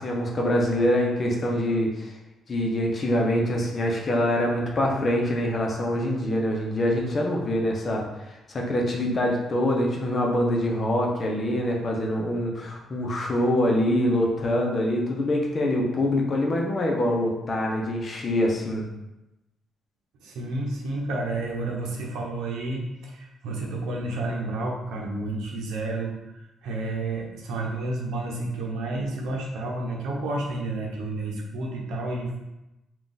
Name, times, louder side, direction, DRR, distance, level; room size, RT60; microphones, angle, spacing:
voice 1, 0.0-2.1 2.5-18.9, left 1 dB, 40° left, 0 dB, 0.8 m, -25 dB
voice 2, 20.2-32.4, right 2 dB, 90° right, -1 dB, 0.8 m, -31 dB
3.6 x 2.5 x 4.0 m, 0.96 s
cardioid pair, 90°, 0 cm